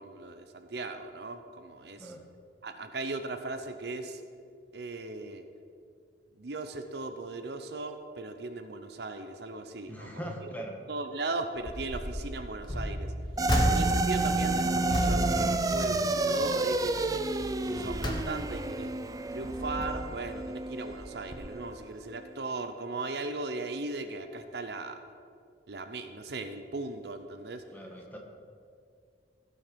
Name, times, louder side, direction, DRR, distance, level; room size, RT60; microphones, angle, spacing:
voice 1, 0.0-2.1 2.6-4.2 4.7-5.5 6.4-10.5 10.9-13.1 13.7-17.2 17.6-18.9 19.3-25.0 25.7-27.6, right 3 dB, 60° right, 8 dB, 0.7 m, -38 dB
voice 2, 9.8-10.8 13.4-13.6 27.7-28.2, equal, 10° left, 0 dB, 1.4 m, -41 dB
sound 1, 11.6-12.2 12.6-16.3 16.7-17.0 17.5-18.8 19.3-20.2 20.9-21.1 21.3-21.4, equal, 25° left, 1.2 m, -33 dB
sound 2, 13.4-21.9, right 2 dB, 20° right, 0.4 m, -30 dB
16.5 x 6.4 x 5.2 m, 2.3 s
head